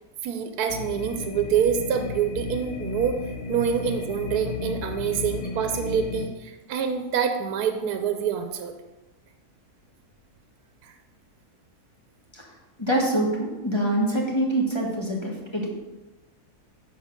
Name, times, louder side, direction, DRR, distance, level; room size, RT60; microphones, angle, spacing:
voice 1, 0.2-3.2 3.5-8.7 10.8-10.9, right 8 dB, 90° right, 7 dB, 1.1 m, -26 dB
sound 1, 0.7-6.3, left 4 dB, 60° left, 0.5 m, -34 dB
voice 2, 12.8-15.7, right 1 dB, 20° left, -2 dB, 1.1 m, -25 dB
7.3 x 4.6 x 5.1 m, 1.1 s
omnidirectional pair, 1.6 m